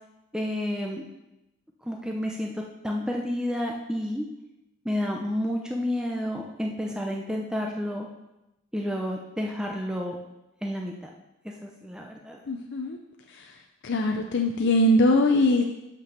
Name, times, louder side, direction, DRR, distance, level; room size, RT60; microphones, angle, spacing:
voice 1, 0.3-1.0 1.9-4.3 4.8-8.1 8.7-10.2 10.6-11.1 11.4-12.4, left 1 dB, 5° right, 0 dB, 0.6 m, -30 dB
voice 2, 12.5-13.0 13.8-15.6, left 1 dB, 55° left, 3 dB, 0.5 m, -21 dB
6.0 x 5.8 x 6.6 m, 0.93 s
head